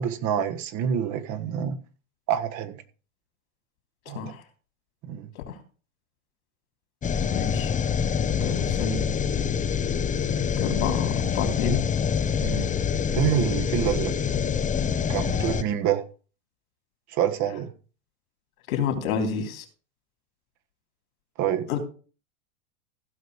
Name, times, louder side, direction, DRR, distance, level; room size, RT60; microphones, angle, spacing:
voice 1, 0.0-1.8 2.3-2.8 4.1-4.2 5.0-5.3 12.4-12.7 13.1-14.1 15.1-16.0 17.1-17.7 21.4-21.7, right 9 dB, 40° right, 1.5 m, -27 dB
sound 1, 7.0-15.6, left 7 dB, 20° left, 0.8 m, -26 dB
voice 2, 7.3-7.7 8.4-9.0 10.6-11.8 18.7-19.6 21.7-21.8, left 6 dB, 75° left, 3.4 m, -29 dB
15.5 x 5.4 x 4.9 m
hypercardioid pair, 115°, 42 cm